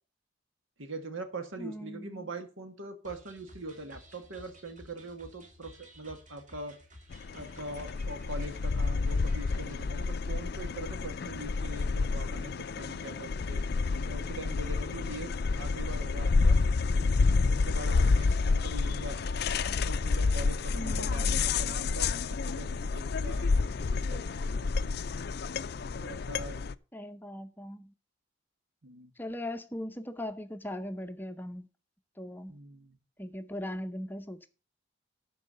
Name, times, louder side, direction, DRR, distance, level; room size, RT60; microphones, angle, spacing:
voice 1, 0.8-6.8 7.3-13.6 14.0-16.6 17.2-19.2 19.9-22.1 22.4-25.0 25.9-26.6 28.8-29.1 32.5-33.0, right 2 dB, 85° right, 1.7 m, -43 dB
voice 2, 1.6-2.3 20.7-21.6 26.9-27.9 29.2-31.7 32.2-32.6 33.2-34.5, left 1 dB, 10° left, 0.6 m, -39 dB
sound 1, 3.0-9.9, equal, 40° right, 2.5 m, -54 dB
sound 2, 7.1-26.7, left 4 dB, 50° left, 0.4 m, -29 dB
12.0 x 4.7 x 6.8 m
head